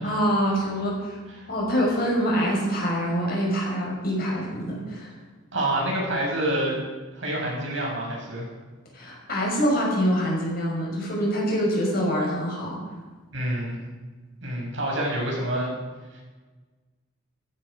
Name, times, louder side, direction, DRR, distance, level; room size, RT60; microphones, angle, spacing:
voice 1, 0.0-1.2 1.5-5.1 8.9-12.8, equal, 45° left, -2 dB, 6.0 m, -25 dB
voice 2, 5.5-6.8 7.2-8.5 13.3-13.8 14.4-15.7 16.1-16.2, right 1 dB, 60° right, -2 dB, 6.4 m, -27 dB
16.0 x 15.0 x 5.2 m, 1.3 s
head